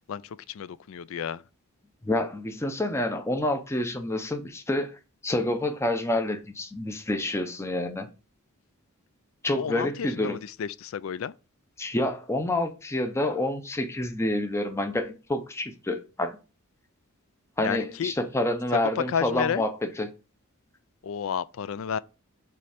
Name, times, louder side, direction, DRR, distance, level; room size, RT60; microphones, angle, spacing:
voice 1, 0.0-1.4 9.5-11.3 17.6-18.1 18.7-19.6 21.0-22.0, left 7 dB, 65° left, 0.4 m, -31 dB
voice 2, 2.0-5.0 5.2-8.1 9.4-10.4 11.8-16.4 17.6-20.1, left 1 dB, 10° left, 0.6 m, -28 dB
6.9 x 3.2 x 5.0 m
head